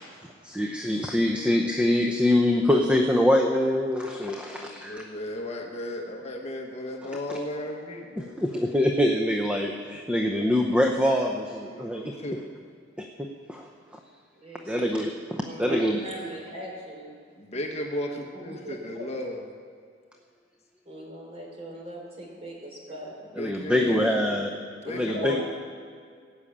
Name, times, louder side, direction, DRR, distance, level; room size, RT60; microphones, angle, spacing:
voice 1, 0.4-5.0 8.2-12.1 13.5-13.7 14.7-15.1 15.4-16.0 23.4-24.5 24.9-25.4, left 1 dB, 5° right, 2 dB, 0.7 m, -24 dB
voice 2, 4.5-8.3 11.6-12.4 17.4-19.4 23.4-24.5 24.8-25.4, left 1 dB, 35° left, 1 dB, 1.3 m, -35 dB
voice 3, 14.3-14.9 15.4-17.1 17.6-18.0 18.3-19.1 20.8-23.2 24.8-25.4, equal, 30° right, -1 dB, 3.5 m, -40 dB
17.5 x 6.4 x 8.6 m, 2.1 s
head